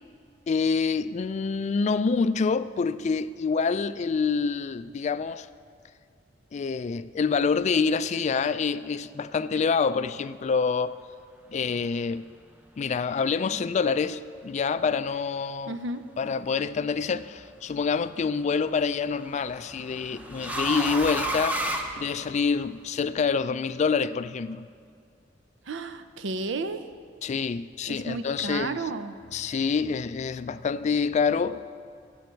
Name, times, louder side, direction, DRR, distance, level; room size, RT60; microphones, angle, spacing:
voice 1, 0.5-5.5 6.5-11.0 11.5-12.3 12.8-15.7 16.2-21.6 22.0-24.7 27.2-28.8 29.3-31.6, left 5 dB, 40° left, 0.3 m, -26 dB
voice 2, 15.7-16.0 25.7-26.9 27.9-29.2, right 3 dB, 90° right, 0.6 m, -32 dB
sound 1, 16.8-17.3 18.7-22.7, right 1 dB, 10° right, 0.7 m, -32 dB
14.5 x 7.9 x 4.5 m
head